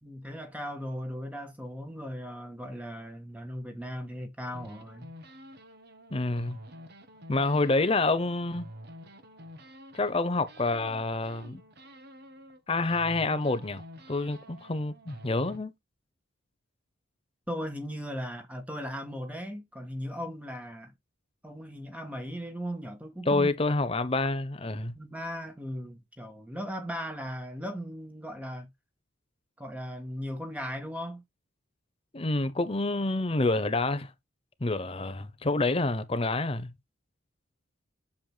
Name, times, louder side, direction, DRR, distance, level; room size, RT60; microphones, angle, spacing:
voice 1, 0.0-5.1 17.5-20.9 21.4-23.5 24.9-28.7 29.6-31.2, equal, 5° right, 1.5 m, -37 dB
sound 1, 4.5-10.2 10.5-12.6 12.9-15.6, equal, 50° right, 1.2 m, -49 dB
voice 2, 6.1-6.6 7.3-8.7 9.9-11.6 12.7-15.7 23.3-24.9 32.1-34.1 34.6-36.7, left 2 dB, 25° left, 0.7 m, -28 dB
7.7 x 7.1 x 2.2 m
head